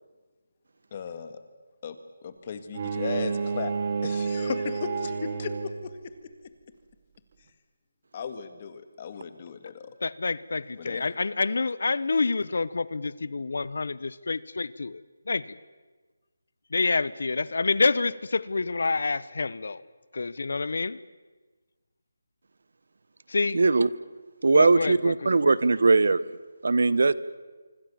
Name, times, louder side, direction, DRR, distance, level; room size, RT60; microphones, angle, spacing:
voice 1, 0.9-1.4 1.8-3.7 4.0-6.1 8.1-9.9 10.8-11.1, left 6 dB, 30° left, 10 dB, 2.0 m, -36 dB
Bowed string instrument, 2.7-6.0, right 4 dB, 35° right, 2.1 m, -30 dB
voice 2, 10.0-15.6 16.7-19.8 20.1-21.0 23.3-23.7 24.5-25.6, left 3 dB, 65° left, 19 dB, 0.8 m, -28 dB
voice 3, 23.5-23.9 24.4-26.2 26.6-27.1, right 3 dB, 65° right, 18 dB, 1.0 m, -20 dB
25.5 x 25.0 x 7.1 m, 1.3 s
figure-of-eight pair, 165°, 0 cm